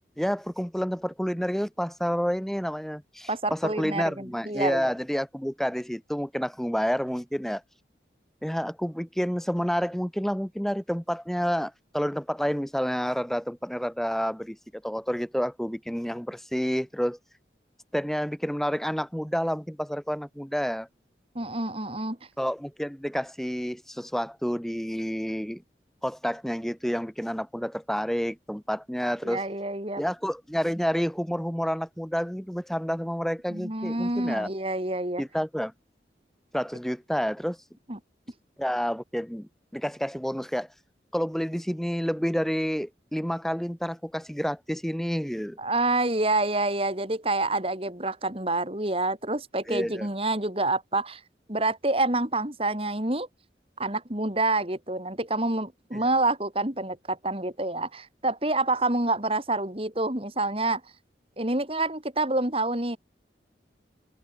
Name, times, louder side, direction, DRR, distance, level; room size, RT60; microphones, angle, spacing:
voice 1, 0.2-7.6 8.4-17.2 17.9-20.9 22.4-25.6 26.0-29.4 30.0-34.5 35.2-35.7 36.5-37.7 38.6-40.7 41.1-45.6 49.7-50.1 55.9-56.0, equal, ahead, 1.0 m, -29 dB
voice 2, 3.3-4.9 21.4-22.2 29.2-30.0 33.5-35.2 37.9-38.0 45.6-51.2 51.5-53.3 53.8-60.8 61.4-63.0, right 2 dB, 30° right, 3.3 m, -27 dB
open air
head